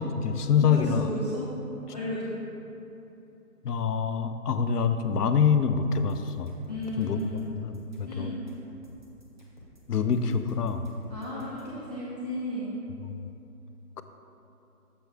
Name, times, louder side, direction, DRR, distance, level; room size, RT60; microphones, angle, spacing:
voice 1, 0.0-1.1 3.6-6.5 7.0-7.2 7.5-8.3 9.9-10.9 13.0-13.2, left 6 dB, 70° left, 9 dB, 0.6 m, -26 dB
voice 2, 0.6-2.3 6.7-7.5 8.1-8.4 11.1-12.7, left 1 dB, 25° left, -9 dB, 0.7 m, -34 dB
sound 1, 5.9-11.8, equal, 30° right, 0.7 m, -54 dB
7.0 x 4.7 x 4.5 m, 2.9 s
figure-of-eight pair, 160°, 48 cm